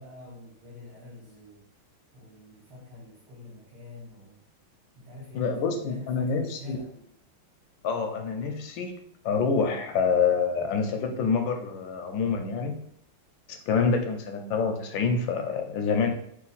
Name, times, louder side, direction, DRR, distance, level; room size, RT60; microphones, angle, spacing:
voice 1, 0.0-1.6 2.1-4.4 5.0-6.9, left 2 dB, 60° right, -6 dB, 1.3 m, -45 dB
voice 2, 5.3-6.8 7.8-8.9 9.2-12.7 13.5-16.1, left 5 dB, 75° left, 5 dB, 1.2 m, -26 dB
3.2 x 3.1 x 3.9 m, 0.70 s
omnidirectional pair, 2.3 m